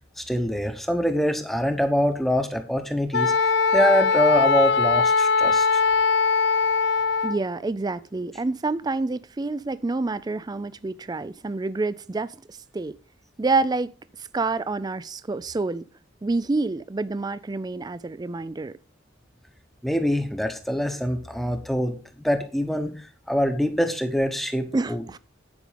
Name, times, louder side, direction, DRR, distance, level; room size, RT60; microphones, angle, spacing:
voice 1, 0.2-5.8 19.8-25.2, equal, ahead, 1.0 m, -24 dB
Wind instrument woodwind instrument, 3.1-7.4, left 4 dB, 60° left, 0.4 m, -21 dB
voice 2, 7.2-13.0 13.4-13.9 14.2-15.9 16.2-18.8 24.7-25.2, right 3 dB, 20° right, 0.4 m, -28 dB
10.5 x 5.3 x 5.0 m
head